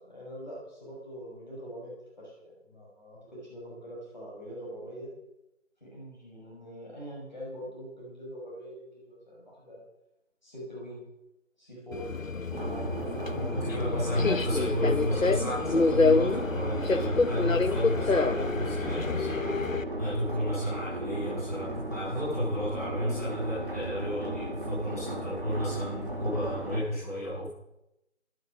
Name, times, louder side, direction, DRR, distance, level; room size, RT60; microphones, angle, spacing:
voice 1, 0.0-1.9 2.2-2.3 2.6-3.2 3.4-5.1 5.8-9.8 10.4-11.0 11.6-13.3 13.8-14.3, equal, 35° left, -5 dB, 6.3 m, -43 dB
Subway metro underground, 11.9-19.8, left 4 dB, 85° left, 1.1 m, -27 dB
sound 1, 12.5-26.8, right 2 dB, 40° right, 2.4 m, -36 dB
voice 2, 13.3-19.6 20.0-27.5, equal, 10° left, -14 dB, 7.8 m, -32 dB
13.0 x 12.5 x 7.3 m, 0.87 s
figure-of-eight pair, 180°, 39 cm